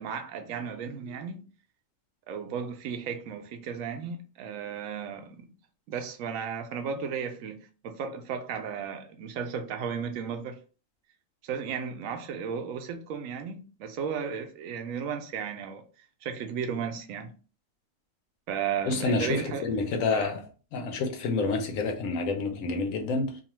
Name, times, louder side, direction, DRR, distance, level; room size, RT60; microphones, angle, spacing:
voice 1, 0.0-1.5 2.3-5.5 5.9-10.6 11.4-15.8 16.2-17.4 18.5-19.7 20.1-20.3, right 7 dB, 90° right, 1.0 m, -34 dB
voice 2, 18.9-20.4 20.7-23.4, left 3 dB, 80° left, 1.1 m, -28 dB
2.7 x 2.4 x 2.9 m
omnidirectional pair, 1.4 m